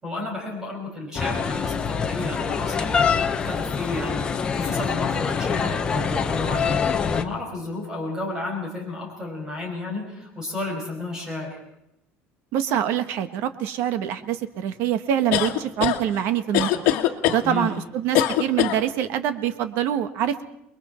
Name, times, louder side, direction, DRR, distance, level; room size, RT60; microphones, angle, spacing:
voice 1, 0.0-3.0 3.3-11.6 17.4-17.7, left 2 dB, 15° right, 0 dB, 5.6 m, -32 dB
sound 1, 1.1-7.2, left 6 dB, 20° left, 1.1 m, -25 dB
voice 2, 12.5-16.8 17.3-20.4, right 10 dB, 60° right, 11 dB, 1.3 m, -25 dB
sound 2, 15.3-16.0 16.5-17.4 18.1-18.8, left 13 dB, 65° left, 1.6 m, -21 dB
28.5 x 21.5 x 4.4 m, 0.79 s
cardioid pair, 170°, 4 cm